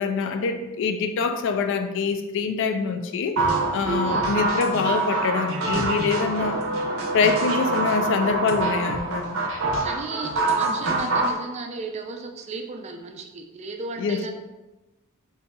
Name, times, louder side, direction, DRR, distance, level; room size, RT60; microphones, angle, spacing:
voice 1, 0.0-3.5 3.7-6.6 7.1-9.4 14.0-14.2, left 5 dB, 60° left, 7 dB, 0.3 m, -25 dB
sound 1, 3.4-11.3, right 2 dB, 70° right, 0.6 m, -25 dB
voice 2, 9.8-14.3, right 3 dB, 30° right, 4 dB, 0.3 m, -35 dB
2.6 x 2.3 x 4.0 m, 1.1 s
head